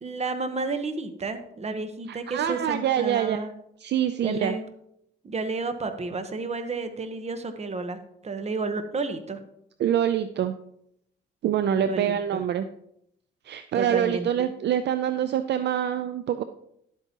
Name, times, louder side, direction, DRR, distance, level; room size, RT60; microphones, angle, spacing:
voice 1, 0.0-3.5 4.2-4.6 5.2-9.4 11.8-12.4 13.7-14.5, right 3 dB, 35° right, 9 dB, 1.1 m, -31 dB
voice 2, 2.1-3.4 3.8-4.6 9.8-10.5 11.4-12.7 13.5-16.4, right 10 dB, 60° right, 10 dB, 0.5 m, -25 dB
11.0 x 8.1 x 2.9 m, 0.75 s
cardioid pair, 90°, 20 cm